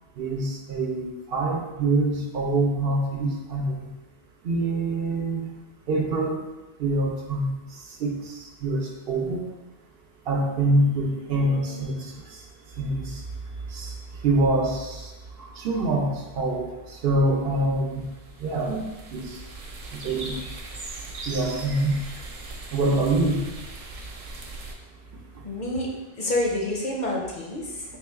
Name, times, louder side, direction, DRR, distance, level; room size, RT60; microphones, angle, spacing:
voice 1, 0.2-3.9 4.4-5.5 5.9-6.4 6.8-7.5 8.0-8.3 8.6-9.4 10.3-12.1 12.8-13.1 13.7-13.9 14.2-15.1 15.6-16.7 17.0-18.0 18.4-19.3 19.9-20.4 21.3-22.0 22.7-23.4, right 2 dB, 65° right, 0 dB, 0.8 m, -25 dB
sound 1, 17.7-24.7, right 2 dB, 50° right, 0.4 m, -39 dB
voice 2, 25.4-25.9 26.2-27.8, left 1 dB, 50° left, -2 dB, 0.7 m, -28 dB
3.6 x 2.3 x 4.5 m, 1.1 s
omnidirectional pair, 1.1 m